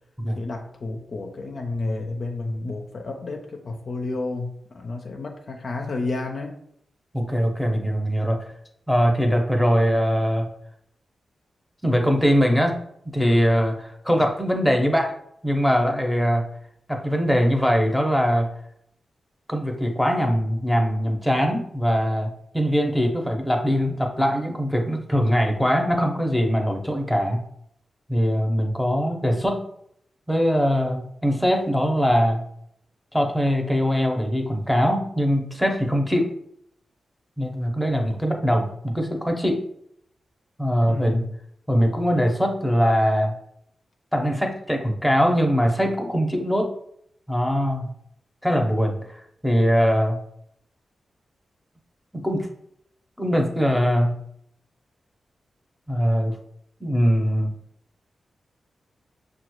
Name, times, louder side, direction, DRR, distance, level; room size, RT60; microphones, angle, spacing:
voice 1, 0.3-6.6 40.9-41.4, left 2 dB, 60° left, 2 dB, 0.5 m, -31 dB
voice 2, 7.1-8.5 8.9-10.5 11.8-12.8 13.1-15.1 15.4-16.5 16.9-18.5 19.5-27.4 28.1-29.7 30.3-32.5 33.1-36.3 37.4-39.7 40.6-41.2 41.7-43.3 44.1-46.8 47.3-47.9 48.4-50.2 52.1-52.5 53.2-54.2 55.9-56.4 56.8-57.5, equal, 5° left, 1 dB, 0.8 m, -22 dB
5.6 x 2.3 x 3.0 m, 0.70 s
supercardioid pair, 40°, 0 cm